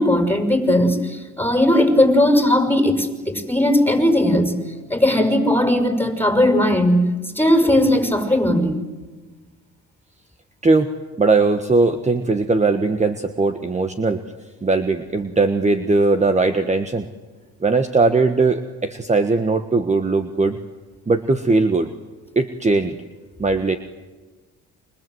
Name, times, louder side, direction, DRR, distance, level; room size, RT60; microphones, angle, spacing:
voice 1, 0.0-4.5 4.9-7.1 7.4-8.8, left 1 dB, 5° left, 6 dB, 6.0 m, -17 dB
voice 2, 10.6-10.9 11.2-14.2 14.6-17.1 17.6-20.6 21.1-21.9 22.3-22.9 23.4-23.8, right 3 dB, 25° right, 8 dB, 1.4 m, -19 dB
28.5 x 25.5 x 8.0 m, 1.3 s
cardioid pair, 90°, 30 cm